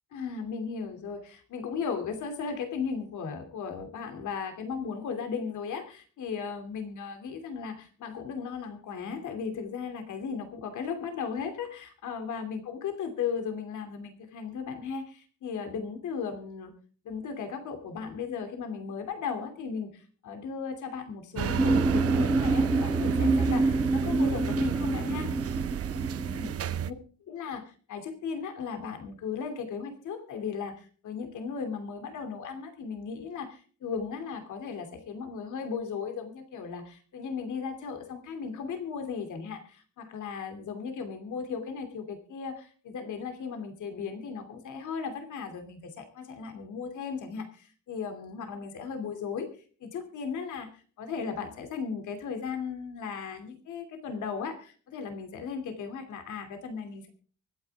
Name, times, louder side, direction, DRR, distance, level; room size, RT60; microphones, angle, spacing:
voice 1, 0.1-16.7 17.0-25.3 26.4-26.5 26.8-26.9 27.3-49.5 49.8-57.1, left 6 dB, 90° left, 6 dB, 2.8 m, -36 dB
sound 1, 21.4-26.9, right 9 dB, 55° right, 0.8 m, -31 dB
sound 2, 21.6-26.5, right 2 dB, 10° right, 1.2 m, -27 dB
24.0 x 9.5 x 3.5 m, 0.42 s
cardioid pair, 125°, 29 cm